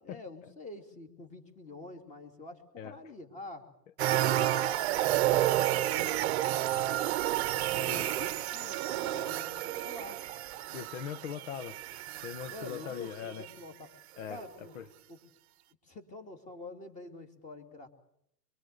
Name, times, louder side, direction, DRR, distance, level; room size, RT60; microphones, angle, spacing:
voice 1, 0.0-3.7 4.0-7.1 7.5-10.2 12.5-13.9 14.3-14.8 15.1-15.2 15.8-17.9, left 2 dB, 15° left, 2.7 m, -47 dB
sound 1, 4.0-13.1 13.5-13.6, right 14 dB, 40° right, 1.0 m, -30 dB
voice 2, 10.7-11.8 12.2-13.4 14.2-14.8, left 9 dB, 50° left, 1.6 m, -40 dB
24.5 x 23.0 x 6.7 m
hypercardioid pair, 155°, 49 cm